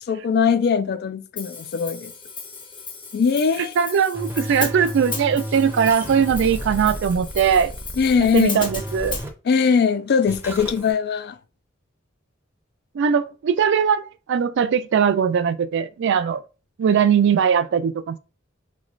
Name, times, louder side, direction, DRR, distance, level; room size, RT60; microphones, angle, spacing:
voice 1, 0.1-2.1 3.1-3.7 8.0-8.6 9.5-11.4, left 6 dB, 55° left, 0.3 m, -20 dB
Hi-hat, 1.4-9.3, left 4 dB, 25° left, 0.7 m, -35 dB
voice 2, 3.6-7.7 8.3-9.2 12.9-16.4 16.8-18.2, right 7 dB, 60° right, 0.3 m, -20 dB
sound 1, 4.1-9.3 10.3-10.9, equal, 10° right, 0.5 m, -33 dB
3.1 x 3.0 x 2.4 m
head